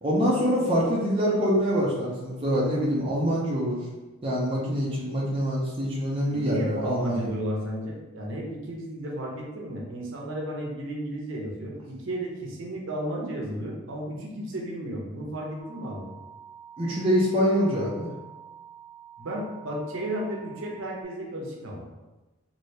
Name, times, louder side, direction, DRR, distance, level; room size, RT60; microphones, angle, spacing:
voice 1, 0.0-3.8 4.2-7.3 16.8-18.1, equal, 25° right, -5 dB, 0.5 m, -25 dB
voice 2, 6.3-16.1 19.2-21.9, right 1 dB, 65° right, -2 dB, 0.7 m, -33 dB
sound 1, 15.6-21.0, right 8 dB, 20° left, 1.0 m, -48 dB
3.2 x 2.6 x 2.7 m, 1.1 s
head